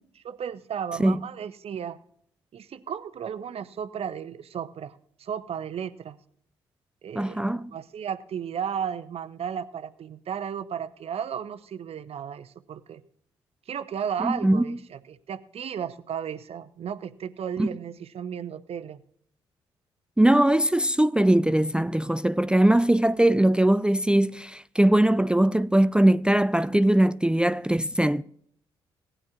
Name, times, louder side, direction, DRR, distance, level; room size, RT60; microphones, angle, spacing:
voice 1, 0.2-2.0 2.5-6.2 7.0-13.0 13.7-19.0, right 8 dB, 50° right, 0.8 m, -34 dB
voice 2, 7.2-7.7 14.2-14.8 17.6-17.7 20.2-28.2, right 1 dB, 5° right, 0.4 m, -21 dB
19.0 x 9.8 x 2.4 m
hypercardioid pair, 45°, 13 cm